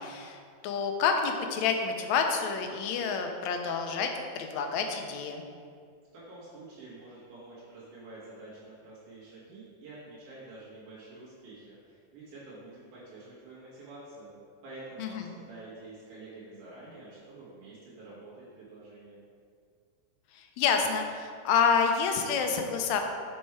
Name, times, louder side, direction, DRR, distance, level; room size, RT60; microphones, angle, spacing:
voice 1, 0.0-4.1 4.4-5.4 15.0-15.2 20.3-23.0, left 6 dB, 75° left, 4 dB, 1.9 m, -28 dB
voice 2, 6.1-14.3 14.6-19.2, right 2 dB, 90° right, -10 dB, 3.4 m, -48 dB
6.5 x 6.3 x 4.6 m, 2.2 s
omnidirectional pair, 3.5 m